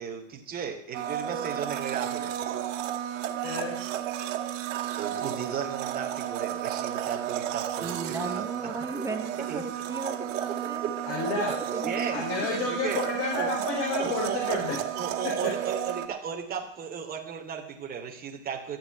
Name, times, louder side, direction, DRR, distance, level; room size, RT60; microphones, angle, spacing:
voice 1, 0.0-2.3 5.0-8.5 9.5-9.8 10.8-11.4 11.8-13.0 13.4-13.5 14.0-14.6 14.9-18.8, right 7 dB, 25° right, 1 dB, 2.9 m, -35 dB
Domestic sounds home sounds, 0.9-16.1, right 11 dB, 70° right, 2.3 m, -32 dB
voice 2, 3.4-3.8 11.1-11.5 12.1-14.8, left 4 dB, 40° left, -2 dB, 4.5 m, -30 dB
voice 3, 7.8-10.9 11.7-12.2, right 3 dB, 10° right, 6 dB, 1.0 m, -36 dB
13.0 x 7.2 x 9.9 m, 0.70 s
supercardioid pair, 145°, 39 cm